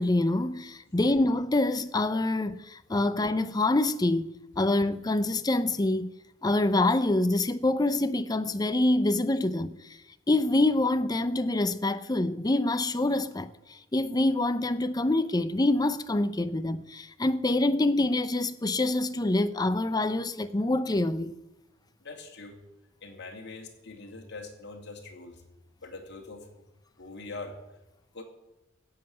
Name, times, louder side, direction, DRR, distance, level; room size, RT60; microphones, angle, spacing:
voice 1, 0.0-4.3 4.6-6.1 6.4-9.7 10.3-21.3, left 2 dB, 20° left, 0.6 m, -26 dB
voice 2, 22.0-22.6 23.0-25.4 25.8-26.5 27.0-27.6 28.1-28.2, left 3 dB, 55° left, 2.5 m, -42 dB
15.0 x 7.7 x 9.1 m
head